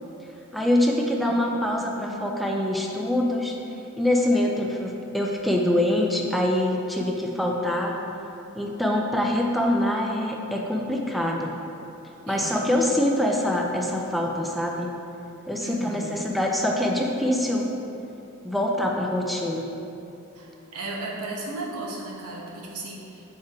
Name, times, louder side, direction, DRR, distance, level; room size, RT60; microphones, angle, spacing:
voice 1, 0.5-3.6 4.0-8.0 8.6-11.6 12.3-14.9 15.5-17.7 18.4-19.7, left 1 dB, ahead, -1 dB, 0.3 m, -24 dB
voice 2, 1.8-2.2 12.3-12.6 15.6-16.2 20.3-23.2, right 2 dB, 85° right, -2 dB, 1.0 m, -35 dB
4.6 x 4.6 x 4.7 m, 2.8 s
head